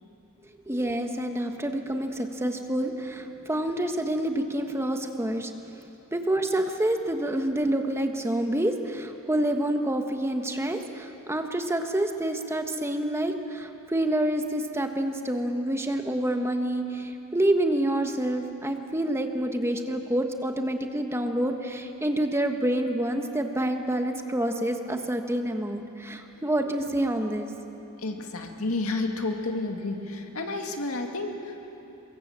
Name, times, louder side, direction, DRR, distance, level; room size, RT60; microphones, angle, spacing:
voice 1, 0.7-5.5 6.1-27.5, right 1 dB, 10° right, 5 dB, 1.3 m, -27 dB
voice 2, 28.0-31.6, left 2 dB, 80° left, 3 dB, 2.3 m, -31 dB
25.5 x 23.0 x 7.4 m, 2.9 s
head